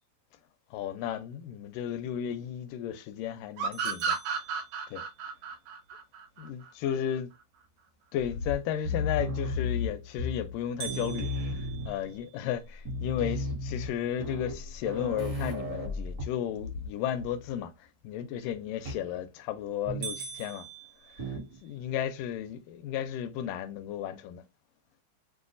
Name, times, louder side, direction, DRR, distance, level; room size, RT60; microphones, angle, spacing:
voice 1, 0.7-4.2 4.9-5.0 6.4-7.3 8.1-20.7 21.1-24.4, left 10 dB, 80° left, 2.0 m, -34 dB
sound 1, 3.6-6.9, right 6 dB, 80° right, 3.0 m, -32 dB
sound 2, 3.7-5.3 10.8-13.0 13.5-13.6 14.1-14.2 14.8-15.1 18.8-19.2 19.6-19.7 20.0-21.8, right 6 dB, 60° right, 1.6 m, -44 dB
sound 3, 8.3-10.6 10.8-12.2 12.5-12.6 12.8-16.9 17.2-17.5 18.8-19.1 19.8-20.3 21.2-21.6, left 2 dB, 45° right, 1.2 m, -34 dB
7.0 x 2.4 x 2.5 m
omnidirectional pair, 4.1 m